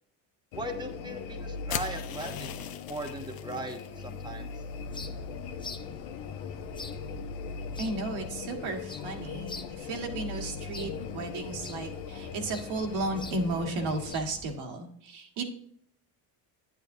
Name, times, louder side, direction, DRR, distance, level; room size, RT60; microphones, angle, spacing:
sound 1, 0.5-14.1, left 5 dB, 90° left, 1.0 m, -39 dB
voice 1, 0.5-4.6, right 1 dB, 10° right, 4 dB, 1.0 m, -39 dB
sound 2, 1.7-3.9, left 10 dB, 50° left, 0.7 m, -39 dB
sound 3, 4.7-14.6, left 3 dB, 10° left, 0.5 m, -47 dB
voice 2, 7.8-15.4, right 2 dB, 75° right, 2 dB, 1.9 m, -34 dB
9.6 x 9.2 x 2.7 m, 0.64 s
cardioid pair, 95°, 47 cm